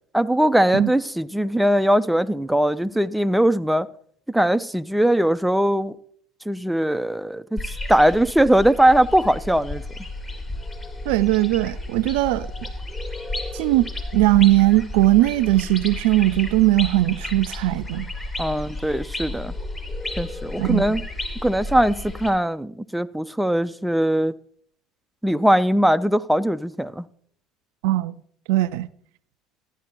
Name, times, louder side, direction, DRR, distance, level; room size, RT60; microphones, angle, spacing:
voice 1, 0.1-3.9 4.3-6.0 6.5-7.6 7.9-9.8 18.4-19.5 20.2-21.0 21.4-24.3 25.2-27.1, right 1 dB, 5° right, 0.4 m, -20 dB
sound 1, 7.6-22.3, left 2 dB, 25° left, 1.7 m, -32 dB
voice 2, 11.1-12.5 13.5-18.1 20.6-20.9 27.8-28.2 28.5-28.9, right 17 dB, 70° right, 0.3 m, -19 dB
13.5 x 10.5 x 3.0 m
hypercardioid pair, 70°, 0 cm